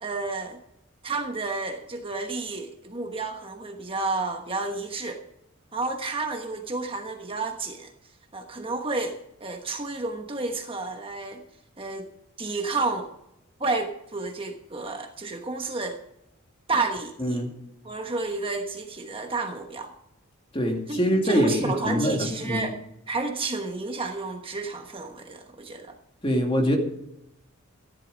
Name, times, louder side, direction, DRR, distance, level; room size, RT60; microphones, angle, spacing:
voice 1, 0.0-0.6 1.0-5.2 5.7-7.9 8.3-11.4 11.8-12.1 12.4-13.1 13.6-16.0 16.7-17.4 17.8-19.9 20.9-21.0 21.2-22.8 23.1-25.9, right 3 dB, 25° right, 4 dB, 1.2 m, -31 dB
voice 2, 17.2-17.5 20.5-22.7 26.2-26.8, equal, 25° left, 2 dB, 2.4 m, -24 dB
14.5 x 11.5 x 5.2 m, 0.81 s
head